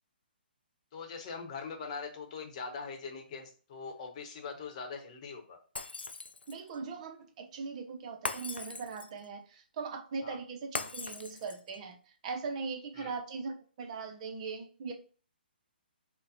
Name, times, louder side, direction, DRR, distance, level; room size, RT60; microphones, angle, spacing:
voice 1, 0.9-5.6 10.2-10.4 13.0-13.1, left 5 dB, 40° left, 1.0 m, -42 dB
Shatter, 5.8-6.7 8.3-9.2 10.8-11.8, left 3 dB, 85° left, 0.4 m, -39 dB
voice 2, 6.5-14.9, right 4 dB, 40° right, 0.7 m, -40 dB
4.0 x 2.2 x 3.9 m
figure-of-eight pair, 135°, 6 cm